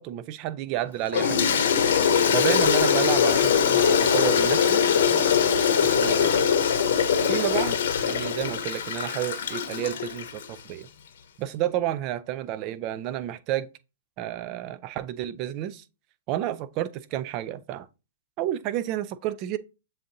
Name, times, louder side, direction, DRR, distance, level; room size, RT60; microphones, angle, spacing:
voice 1, 0.0-1.6 2.3-4.8 5.1-5.4 5.8-6.5 7.3-10.9 11.4-13.7 14.2-15.8 16.3-17.9 18.4-19.6, right 12 dB, 35° right, 0.3 m, -30 dB
Toilet flush, 1.1-10.5, left 7 dB, 70° left, 0.8 m, -22 dB
7.1 x 2.6 x 2.6 m
hypercardioid pair, 150°, 0 cm